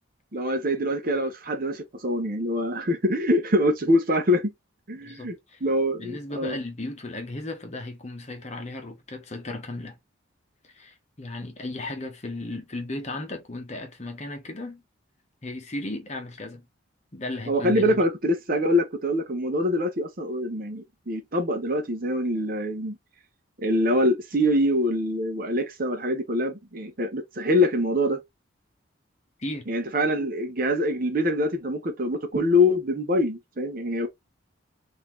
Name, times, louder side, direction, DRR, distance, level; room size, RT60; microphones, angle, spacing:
voice 1, 0.3-4.5 4.9-5.4 5.6-6.6 17.5-23.0 23.6-28.2 29.7-34.1, left 1 dB, 45° right, 0.8 m, -24 dB
voice 2, 5.0-5.6 6.0-10.0 10.6-14.8 15.4-16.7 17.1-18.0 29.4-29.7, left 2 dB, 35° left, 0.9 m, -35 dB
4.0 x 2.7 x 3.1 m
head